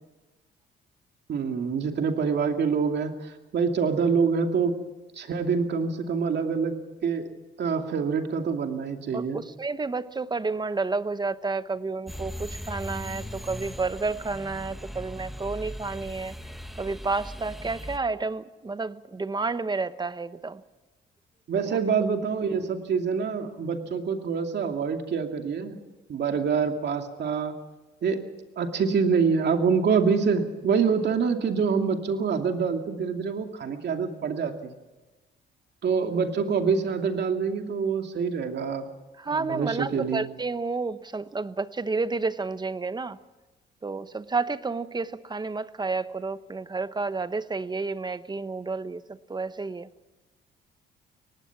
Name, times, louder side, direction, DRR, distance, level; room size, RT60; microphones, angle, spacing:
voice 1, 1.3-4.7 5.2-6.7 7.0-7.3 7.6-9.4 21.5-25.8 26.1-27.6 28.0-28.2 28.6-34.7 35.8-38.9 39.3-40.3, right 5 dB, 60° right, 5 dB, 2.6 m, -26 dB
voice 2, 9.1-16.3 16.8-20.6 21.6-21.8 39.2-43.2 43.8-49.9, right 3 dB, 20° right, 13 dB, 1.0 m, -30 dB
sound 1, 12.1-18.0, equal, ahead, 1.4 m, -39 dB
24.0 x 19.0 x 6.0 m, 1.2 s
cardioid pair, 90°, 20 cm